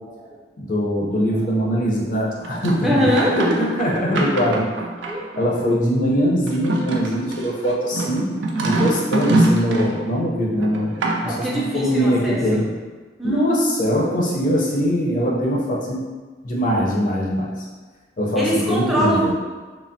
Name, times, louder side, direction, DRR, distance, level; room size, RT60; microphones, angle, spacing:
voice 1, 0.0-0.4 1.3-1.6 2.8-3.4 5.1-5.6 11.2-12.7 13.2-13.5 18.3-19.3, equal, ahead, -6 dB, 0.5 m, -23 dB
voice 2, 0.6-3.1 3.3-4.7 5.4-8.2 8.6-11.0 11.2-12.6 13.2-16.0 16.4-17.5 18.2-19.3, equal, 50° left, -3 dB, 0.5 m, -21 dB
sound 1, 2.4-5.5 6.5-10.0 10.6-11.5, right 2 dB, 90° right, 0.4 m, -24 dB
3.3 x 2.0 x 2.6 m, 1.4 s
head